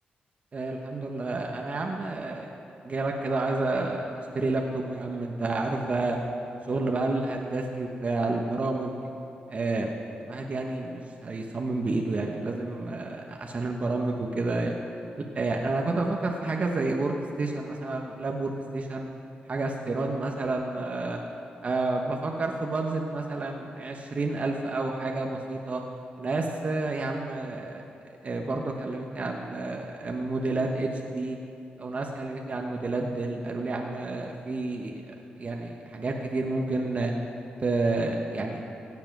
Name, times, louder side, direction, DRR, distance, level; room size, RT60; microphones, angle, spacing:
voice 1, 0.5-2.5 2.8-6.2 6.7-9.0 9.5-10.0 10.2-14.7 15.2-19.1 19.5-21.2 21.6-25.8 26.2-27.8 28.2-31.4 31.8-37.1 37.6-38.6, right 2 dB, 45° right, 1 dB, 1.1 m, -30 dB
16.5 x 7.6 x 6.1 m, 2.7 s
cardioid pair, 85°, 3 cm